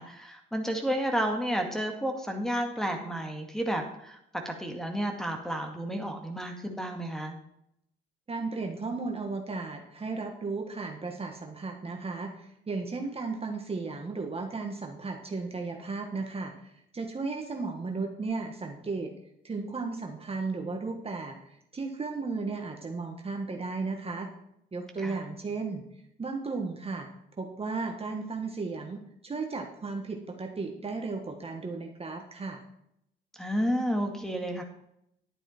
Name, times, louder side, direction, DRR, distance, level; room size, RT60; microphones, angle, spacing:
voice 1, 0.0-4.2 4.5-7.4 25.0-25.1 33.4-34.6, equal, ahead, 4 dB, 2.0 m, -31 dB
voice 2, 8.3-19.1 19.4-24.3 24.7-25.8 26.2-27.1 27.4-32.6, right 4 dB, 30° right, 3 dB, 1.4 m, -35 dB
11.0 x 8.9 x 4.4 m, 0.77 s
cardioid pair, 90°, 20 cm